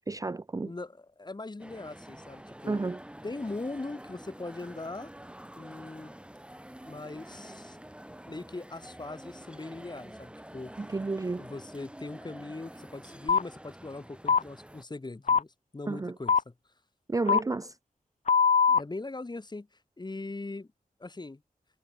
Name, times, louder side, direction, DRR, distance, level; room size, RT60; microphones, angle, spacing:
voice 1, 0.1-0.7 2.7-3.0 10.8-11.5 15.9-16.1 17.1-17.7, right 3 dB, 25° right, 0.5 m, -31 dB
voice 2, 0.6-2.8 3.2-5.1 5.6-6.1 6.8-7.8 8.3-10.9 11.4-16.5 18.7-19.7 20.0-20.7 21.0-21.4, left 2 dB, 30° left, 2.7 m, -40 dB
sound 1, 1.6-14.8, right 1 dB, 5° right, 2.7 m, -48 dB
sound 2, 13.3-13.4 14.3-14.4 15.3-15.4 16.3-16.4 17.3-17.4 18.3-18.8, left 6 dB, 50° left, 0.6 m, -21 dB
wide cardioid pair, 105°, 15 cm